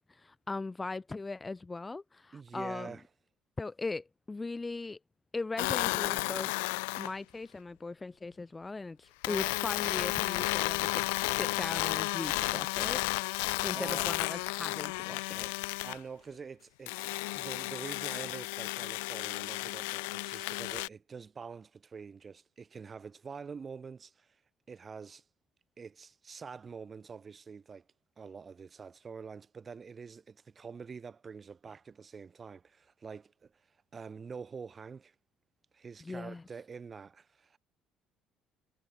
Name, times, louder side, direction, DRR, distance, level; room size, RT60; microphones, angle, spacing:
voice 1, 0.1-3.0 3.6-5.0 5.3-6.5 7.0-13.3 13.6-15.5 36.0-36.4, left 3 dB, 20° left, 1.5 m, -39 dB
voice 2, 2.3-3.0 13.7-14.2 15.8-24.4 24.7-25.2 25.8-27.8 28.2-33.5 33.9-35.1 35.7-37.6, right 5 dB, 35° right, 6.1 m, -46 dB
sound 1, 5.6-7.1 9.2-16.0 16.9-20.9, left 29 dB, 80° left, 0.6 m, -33 dB
hypercardioid pair, 65°, 0 cm